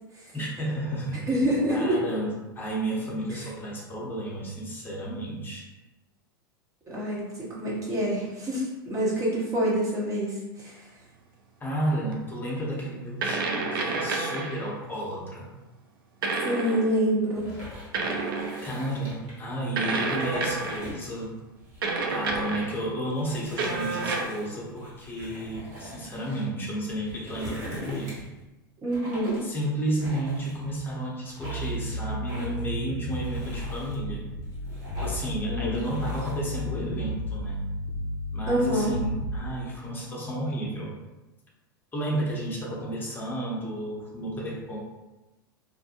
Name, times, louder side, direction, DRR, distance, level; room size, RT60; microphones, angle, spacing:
voice 1, 0.3-1.2 1.7-5.7 11.6-15.5 18.6-21.4 22.1-28.2 29.4-34.3 34.9-37.6 38.3-41.0 41.9-44.8, right 1 dB, 15° left, -4 dB, 0.8 m, -32 dB
voice 2, 1.3-2.0 6.9-10.9 16.4-17.5 28.8-29.4 35.5-35.8 38.5-39.0, right 1 dB, 25° right, -6 dB, 0.9 m, -26 dB
sound 1, 12.1-12.2 13.2-14.7 16.2-17.0 17.9-18.8 19.8-21.0 21.8-22.8 23.6-24.2, right 3 dB, 70° right, 0.4 m, -29 dB
sound 2, 17.3-19.4 19.9-21.2 21.6-22.6 23.2-26.4 26.9-28.4 28.9-29.5 30.0-30.9 31.3-31.8 32.3-32.7 33.1-34.0 34.4-35.4 35.7-36.4, equal, 55° right, 1.3 m, -42 dB
sound 3, 31.4-39.4, left 1 dB, 60° left, 0.4 m, -33 dB
2.5 x 2.1 x 2.8 m, 1.1 s
hypercardioid pair, 90°, 12 cm